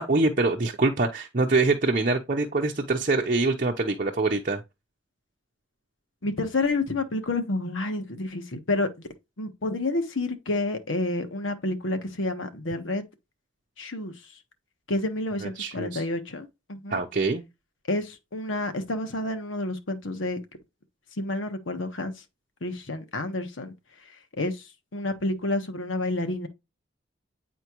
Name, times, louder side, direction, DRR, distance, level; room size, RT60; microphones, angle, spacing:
voice 1, 0.0-4.6 15.4-16.0 16.9-17.4, right 3 dB, 45° right, 0.7 m, -24 dB
voice 2, 6.2-9.1 9.4-13.0 13.8-14.4 14.9-17.0 17.9-20.4 21.2-22.1 22.6-23.7 24.0-26.5, left 2 dB, 85° left, 1.3 m, -29 dB
9.4 x 4.3 x 3.0 m
head